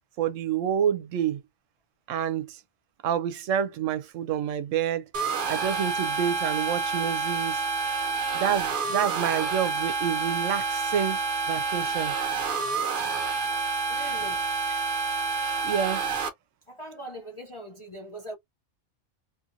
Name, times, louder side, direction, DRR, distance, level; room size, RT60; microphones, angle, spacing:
voice 1, 0.2-1.4 2.1-2.6 3.0-5.0 5.5-7.6 8.3-11.2 11.5-12.1 15.6-16.0, right 9 dB, 80° right, 0.9 m, -28 dB
sound 1, 5.1-16.3, right 4 dB, 50° right, 0.7 m, -28 dB
voice 2, 13.9-14.4 16.7-18.3, right 1 dB, 35° left, 0.5 m, -41 dB
2.7 x 2.5 x 2.7 m
omnidirectional pair, 1.3 m